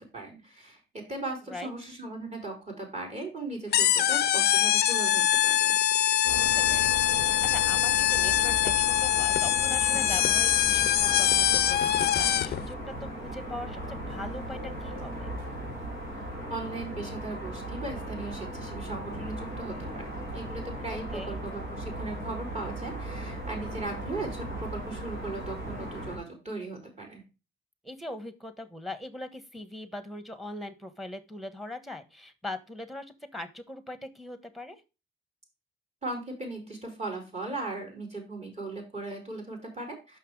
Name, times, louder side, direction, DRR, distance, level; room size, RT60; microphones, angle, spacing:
voice 1, 0.0-5.8 16.5-20.0 20.3-27.2 36.0-40.2, right 2 dB, 35° right, 0 dB, 4.1 m, -38 dB
sound 1, 3.7-12.6, left 11 dB, 55° left, 0.4 m, -24 dB
sound 2, 6.2-26.2, right 1 dB, 80° right, 3.5 m, -37 dB
voice 2, 6.4-12.8 13.1-15.3 20.9-21.4 27.8-34.8, left 1 dB, ahead, 9 dB, 1.3 m, -41 dB
6.1 x 5.8 x 4.7 m, 0.30 s
cardioid pair, 90°, 20 cm